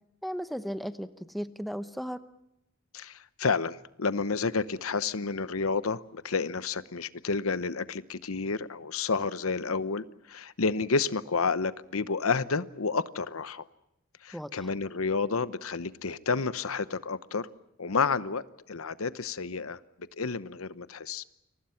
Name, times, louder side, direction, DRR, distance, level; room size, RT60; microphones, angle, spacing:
voice 1, 0.2-2.2 14.3-14.7, equal, ahead, 11 dB, 0.9 m, -36 dB
voice 2, 2.9-13.6 14.2-17.5 17.8-18.4 18.7-19.8 20.2-21.2, left 4 dB, 90° left, 15 dB, 0.9 m, -30 dB
30.0 x 24.0 x 5.8 m, 0.86 s
head